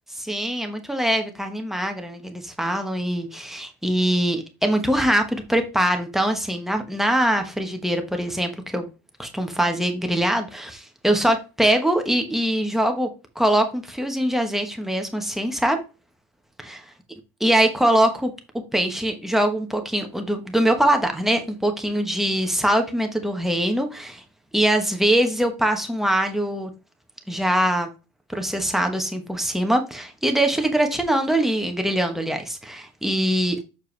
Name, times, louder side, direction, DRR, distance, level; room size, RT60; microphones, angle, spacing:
voice 1, 0.1-8.9 9.2-15.8 16.6-16.8 17.4-18.3 18.7-24.2 24.5-26.7 27.3-27.9 28.3-33.6, right 1 dB, ahead, 4 dB, 1.1 m, -23 dB
6.9 x 4.5 x 3.3 m, 0.30 s
supercardioid pair, 130°, 16 cm